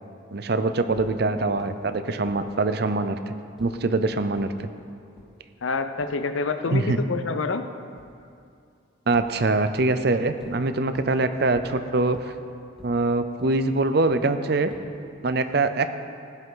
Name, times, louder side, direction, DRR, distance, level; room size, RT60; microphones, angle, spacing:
voice 1, 0.3-4.7 6.7-7.0 9.1-12.3 12.8-14.7 15.2-15.9, right 3 dB, 55° right, 10 dB, 0.6 m, -24 dB
sound 1, 0.9-1.1 1.6-1.7 2.2-2.3 2.9-3.0 3.6-3.7 4.4-4.5 5.2-5.3 6.0-6.1 8.0-8.1 9.1-9.2 9.8-9.9 10.4-10.5 10.9-11.1 11.5-11.6 12.1-12.2 12.8-12.9 13.4-13.5 14.1-14.2 14.7-14.8, equal, ahead, 2.5 m, -46 dB
voice 2, 5.6-7.7, left 4 dB, 85° left, 9 dB, 0.7 m, -27 dB
16.0 x 10.5 x 3.9 m, 2.4 s
head